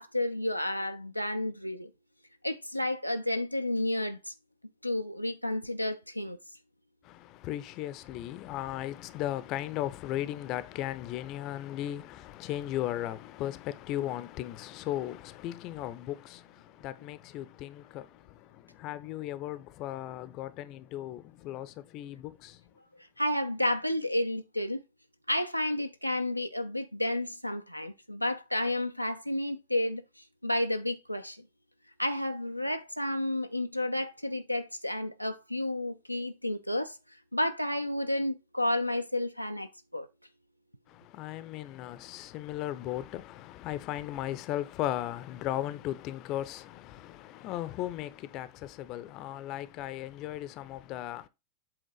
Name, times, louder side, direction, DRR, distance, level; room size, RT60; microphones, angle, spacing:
voice 1, 0.0-1.9 2.4-4.3 4.8-6.4 23.2-24.8 25.3-31.4 32.0-37.0 37.3-40.1, left 1 dB, 90° left, 0.4 m, -31 dB
voice 2, 7.0-22.6 40.9-51.3, left 13 dB, 40° left, 0.6 m, -37 dB
7.9 x 3.6 x 4.8 m
figure-of-eight pair, 90°, 0 cm